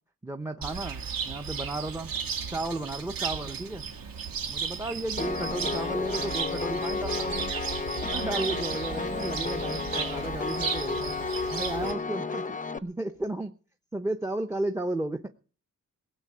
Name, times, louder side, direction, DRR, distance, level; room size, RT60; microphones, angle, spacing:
voice 1, 0.2-2.1 2.5-3.9 4.5-7.6 8.0-11.1 11.5-12.5 12.8-13.6 13.9-15.2, right 2 dB, 10° right, 5 dB, 0.8 m, -33 dB
Cricket, 0.6-11.9, right 6 dB, 90° right, 2.0 m, -35 dB
Piano, 5.2-12.8, left 4 dB, 25° left, 0.7 m, -32 dB
18.5 x 7.5 x 8.5 m, 0.40 s
wide cardioid pair, 140°, 33 cm